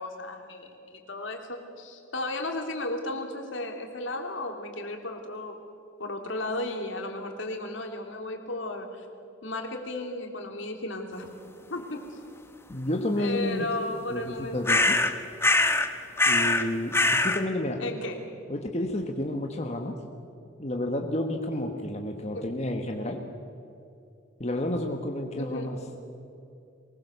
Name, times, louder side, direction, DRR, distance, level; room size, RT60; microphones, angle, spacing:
voice 1, 0.0-5.6 6.0-9.0 9.4-11.3 11.7-12.2 13.2-14.8 17.8-18.3 22.3-22.4 25.4-25.8, left 2 dB, 70° left, 4 dB, 2.8 m, -34 dB
voice 2, 12.7-13.7 14.1-15.0 16.3-17.8 18.5-20.0 20.6-23.2 24.4-25.8, left 1 dB, 35° left, 3 dB, 1.4 m, -30 dB
sound 1, 14.7-15.1 15.4-15.9 16.2-16.7 16.9-17.4, left 2 dB, 10° left, 1.0 m, -22 dB
23.0 x 20.5 x 6.9 m, 2.6 s
head